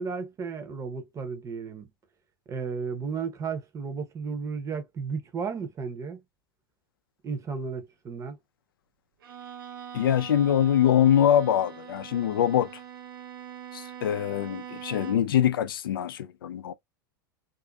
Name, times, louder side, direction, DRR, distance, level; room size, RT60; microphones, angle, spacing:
voice 1, 0.0-1.9 2.5-6.2 7.2-8.4, right 5 dB, 25° right, 0.8 m, -34 dB
Bowed string instrument, 9.2-15.4, right 9 dB, 70° right, 0.7 m, -43 dB
voice 2, 9.9-12.7 13.7-16.7, left 10 dB, 75° left, 0.4 m, -23 dB
2.5 x 2.4 x 2.2 m
hypercardioid pair, 90°, 12 cm